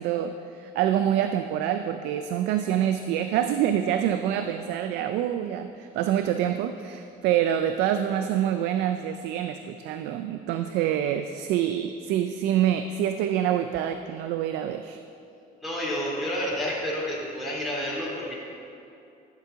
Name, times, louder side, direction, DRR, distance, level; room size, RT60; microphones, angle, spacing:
voice 1, 0.0-15.0, right 10 dB, 90° right, 8 dB, 0.4 m, -26 dB
voice 2, 15.6-18.3, equal, ahead, -7 dB, 2.5 m, -30 dB
12.5 x 7.5 x 3.7 m, 2.7 s
cardioid pair, 110°, 17 cm